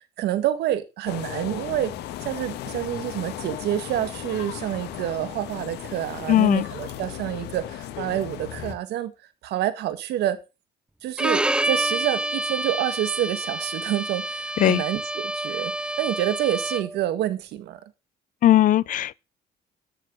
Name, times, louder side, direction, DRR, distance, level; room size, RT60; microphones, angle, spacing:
voice 1, 0.0-1.9 2.2-9.1 9.4-10.4 11.0-17.8, right 12 dB, 80° right, 2.0 m, -28 dB
sound 1, 1.1-8.8, left 11 dB, 80° left, 1.5 m, -36 dB
voice 2, 6.3-6.7 14.6-14.8 18.4-19.1, left 13 dB, 50° left, 0.5 m, -18 dB
Bowed string instrument, 11.2-17.0, right 1 dB, 5° right, 0.6 m, -28 dB
13.5 x 6.8 x 6.4 m
cardioid pair, 110°, 17 cm